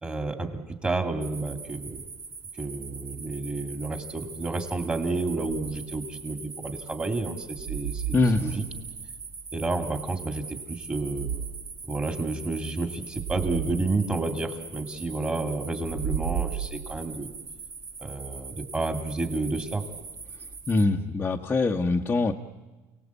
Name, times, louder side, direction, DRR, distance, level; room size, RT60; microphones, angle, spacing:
voice 1, 0.0-2.0 2.6-8.7 9.5-11.3 11.8-17.3 18.0-19.8, right 3 dB, 15° right, 6 dB, 2.4 m, -30 dB
sound 1, 1.2-20.8, right 4 dB, 30° right, 2.0 m, -42 dB
sound 2, 5.5-6.0 7.5-9.1 11.1-11.7 13.1-13.9 15.8-17.2, right 8 dB, 80° right, 3.1 m, -34 dB
voice 2, 8.1-8.6 20.7-22.3, left 3 dB, 20° left, 0 dB, 1.0 m, -23 dB
29.0 x 18.5 x 8.3 m, 1.2 s
cardioid pair, 140°, 8 cm